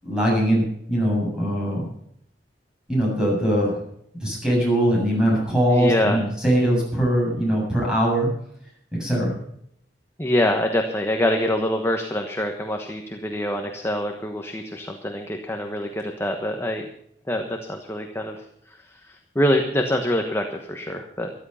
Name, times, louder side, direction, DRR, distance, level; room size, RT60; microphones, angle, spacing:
voice 1, 0.0-1.9 2.9-3.8 4.2-8.3 8.9-9.3, equal, 5° right, -3 dB, 7.6 m, -21 dB
voice 2, 5.7-6.2 10.2-16.8 17.3-18.4 19.1-21.3, left 1 dB, 15° left, 3 dB, 1.2 m, -25 dB
13.5 x 12.5 x 5.7 m, 0.71 s
head